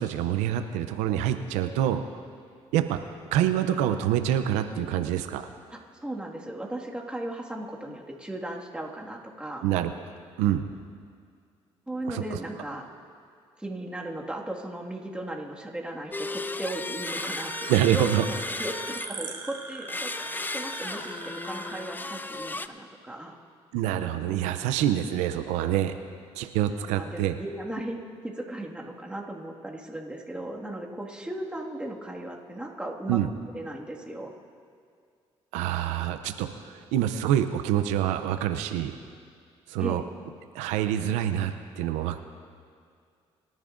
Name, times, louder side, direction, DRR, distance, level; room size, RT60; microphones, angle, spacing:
voice 1, 0.0-2.0 2.7-3.0 3.3-5.5 9.6-9.9 10.4-10.6 12.1-12.4 17.7-18.3 23.7-26.0 26.4-27.4 33.1-33.3 35.5-39.0 39.7-40.0 40.5-42.2, right 11 dB, 90° right, 8 dB, 0.5 m, -26 dB
voice 2, 5.7-9.7 11.9-12.9 13.6-23.4 26.9-33.2 33.5-34.3 39.8-40.0, right 1 dB, 10° right, -1 dB, 1.8 m, -37 dB
sound 1, 16.1-19.4 19.9-22.7, left 2 dB, 15° left, 0.5 m, -35 dB
sound 2, 17.0-21.8, right 3 dB, 35° right, 1.9 m, -40 dB
24.5 x 10.5 x 2.6 m, 2.2 s
supercardioid pair, 70°, 12 cm